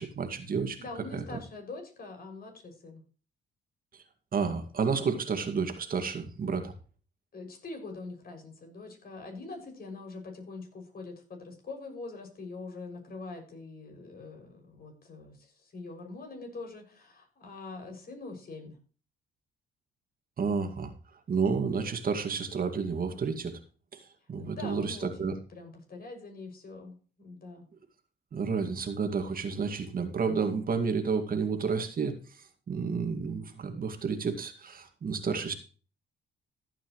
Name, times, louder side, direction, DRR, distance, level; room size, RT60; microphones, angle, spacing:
voice 1, 0.0-0.8 1.1-1.2 4.3-6.7 20.4-20.9 21.3-23.5 23.9-25.4 28.3-35.5, right 5 dB, 45° right, 6 dB, 2.1 m, -31 dB
voice 2, 0.8-3.0 7.3-18.8 24.4-27.6, left 3 dB, 50° left, 3 dB, 6.5 m, -44 dB
15.0 x 8.6 x 3.1 m, 0.37 s
cardioid pair, 90°, 20 cm